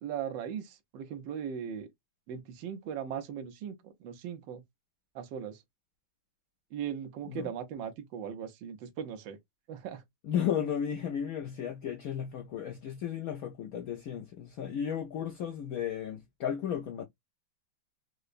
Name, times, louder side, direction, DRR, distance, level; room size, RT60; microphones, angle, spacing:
voice 1, 0.0-1.9 2.3-4.6 5.1-5.6 6.7-9.4 9.7-10.0, right 8 dB, 70° right, 1.4 m, -38 dB
voice 2, 10.2-17.0, left 9 dB, 75° left, 0.8 m, -34 dB
4.7 x 2.1 x 2.5 m
omnidirectional pair, 2.2 m